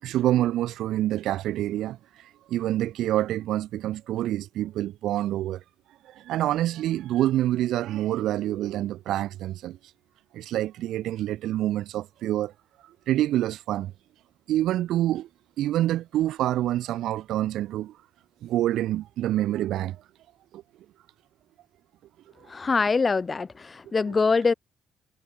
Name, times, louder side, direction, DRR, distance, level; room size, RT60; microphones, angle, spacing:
voice 1, 0.0-2.0 2.5-5.6 6.2-9.8 10.3-12.5 13.1-13.9 14.5-15.3 15.6-17.9 18.4-20.0 20.5-20.6, right 13 dB, 85° right, 6.4 m, -26 dB
voice 2, 22.5-24.5, left 4 dB, 30° left, 1.1 m, -24 dB
cardioid pair, 90°, 0 cm